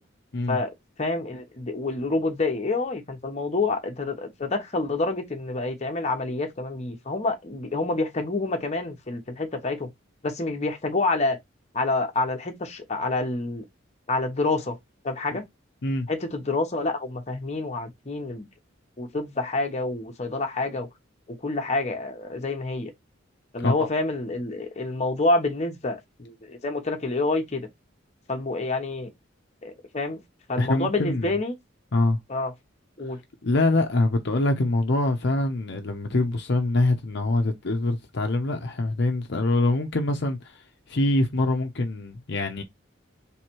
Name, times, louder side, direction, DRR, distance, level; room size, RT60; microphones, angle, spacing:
voice 1, 1.0-9.9 10.2-11.4 11.7-13.6 14.1-14.8 15.0-15.4 16.1-18.5 19.0-20.9 21.4-22.9 23.5-27.7 28.3-29.1 29.6-30.2 30.5-31.6 32.3-32.5 33.0-33.2, left 2 dB, 35° left, 0.9 m, -27 dB
voice 2, 30.6-31.3 31.9-32.2 33.4-42.6, left 2 dB, 60° left, 0.7 m, -24 dB
3.4 x 3.2 x 4.4 m
head